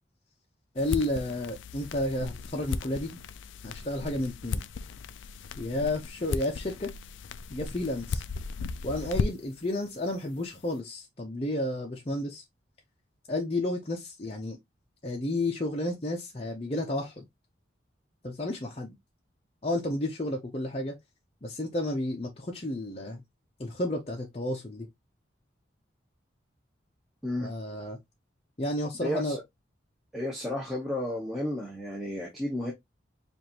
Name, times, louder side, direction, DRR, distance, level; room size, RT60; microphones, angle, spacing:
voice 1, 0.7-3.1 3.6-4.6 5.6-6.9 7.5-8.2 8.8-12.4 13.3-14.6 15.0-17.2 18.2-19.0 19.6-21.0 21.4-23.2 23.6-24.9 27.4-28.0 28.6-29.4, left 1 dB, 30° left, 0.7 m, -31 dB
sound 1, 0.8-9.6, left 4 dB, 75° left, 0.4 m, -36 dB
voice 2, 29.0-29.3 30.1-32.7, left 1 dB, ahead, 0.9 m, -32 dB
4.8 x 2.6 x 2.8 m
head